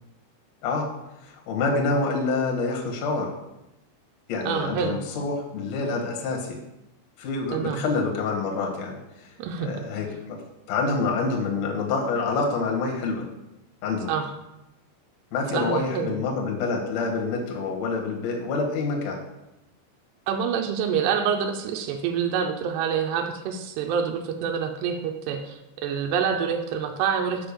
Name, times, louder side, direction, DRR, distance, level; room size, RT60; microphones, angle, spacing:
voice 1, 1.2-3.3 4.3-6.6 7.2-9.3 9.6-10.4 10.7-13.3 13.8-14.1 15.3-19.2, left 3 dB, 60° left, 0 dB, 1.8 m, -27 dB
voice 2, 4.4-5.0 7.5-7.8 9.4-9.9 14.1-14.3 15.5-16.1 20.3-27.5, right 7 dB, 80° right, 3 dB, 2.5 m, -27 dB
6.9 x 5.7 x 6.9 m, 0.92 s
omnidirectional pair, 5.4 m